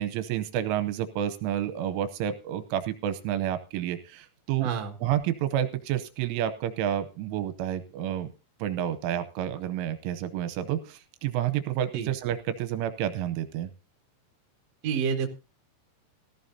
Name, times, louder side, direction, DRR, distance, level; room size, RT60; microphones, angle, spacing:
voice 1, 0.0-4.7 5.0-8.3 8.6-13.7, right 11 dB, 80° right, 11 dB, 3.1 m, -29 dB
voice 2, 4.6-4.9 11.9-12.1 14.8-15.3, right 6 dB, 60° right, 4 dB, 1.8 m, -28 dB
18.0 x 14.5 x 2.7 m, 0.30 s
omnidirectional pair, 5.9 m